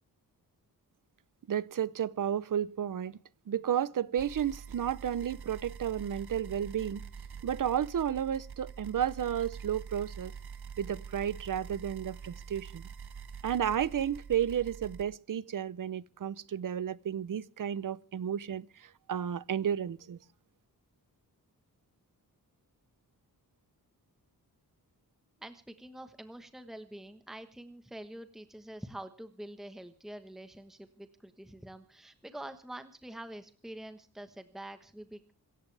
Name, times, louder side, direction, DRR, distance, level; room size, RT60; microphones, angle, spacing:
voice 1, 1.5-3.2 3.5-7.0 7.4-10.3 10.8-12.8 13.4-20.2, right 9 dB, 60° right, 0.8 m, -32 dB
sound 1, 4.2-15.0, right 6 dB, 85° right, 1.6 m, -45 dB
voice 2, 25.4-35.3, right 1 dB, ahead, 1.2 m, -46 dB
26.0 x 14.5 x 3.4 m
wide cardioid pair, 175°, 37 cm